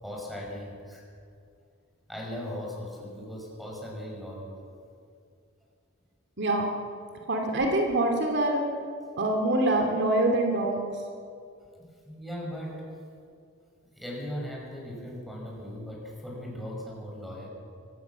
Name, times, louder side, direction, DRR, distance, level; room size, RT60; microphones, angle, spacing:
voice 1, 0.0-1.0 2.1-4.6 7.1-7.2 8.9-9.1 12.0-13.0 14.0-17.5, equal, ahead, -3 dB, 6.0 m, -38 dB
voice 2, 7.3-8.6 9.2-10.8, right 1 dB, 55° right, 2 dB, 2.4 m, -25 dB
23.5 x 18.5 x 7.2 m, 2.4 s
head